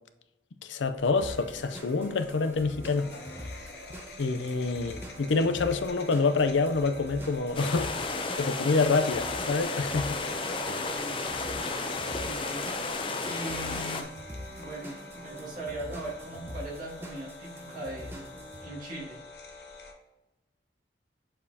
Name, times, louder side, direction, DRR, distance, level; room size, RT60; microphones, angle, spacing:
voice 1, 0.6-3.1 4.2-10.2 10.6-10.8, left 3 dB, 80° left, 0.5 m, -27 dB
sound 1, 0.9-19.9, left 1 dB, 60° left, 0.9 m, -47 dB
sound 2, 1.2-18.6, equal, 10° right, 0.8 m, -45 dB
sound 3, 7.5-14.0, left 3 dB, 30° left, 0.5 m, -33 dB
voice 2, 10.9-11.2 12.1-12.6 13.2-14.1 14.6-19.2, right 1 dB, 45° right, 2.0 m, -40 dB
6.8 x 5.3 x 2.8 m
head